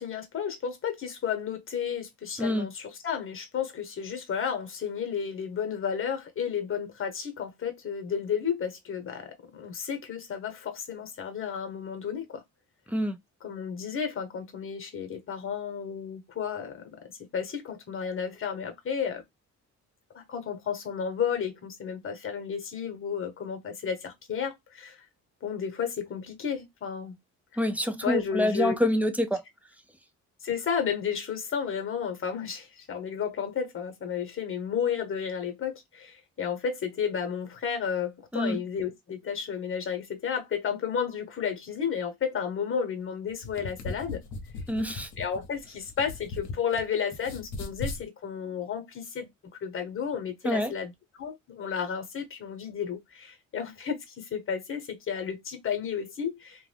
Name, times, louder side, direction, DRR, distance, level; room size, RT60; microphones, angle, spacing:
voice 1, 0.0-9.2 9.6-10.5 10.9-12.2 13.4-16.7 17.3-17.4 17.9-19.2 20.3-23.9 24.3-24.5 25.4-27.1 28.0-28.7 30.5-32.6 32.9-35.7 36.4-38.1 38.3-44.2 45.2-45.6 46.0-46.1 46.4-48.8 49.2-49.3 49.6-50.9 51.2-53.0 53.5-53.9 54.3-54.8 55.1-56.3, left 7 dB, 45° left, 1.0 m, -32 dB
voice 2, 27.6-29.4 38.3-38.6 44.7-45.1 50.4-50.7, equal, 5° right, 0.5 m, -26 dB
sound 1, 43.3-46.8 47.1-48.0, left 3 dB, 70° left, 0.8 m, -38 dB
2.5 x 2.2 x 3.3 m
cardioid pair, 90°, 30 cm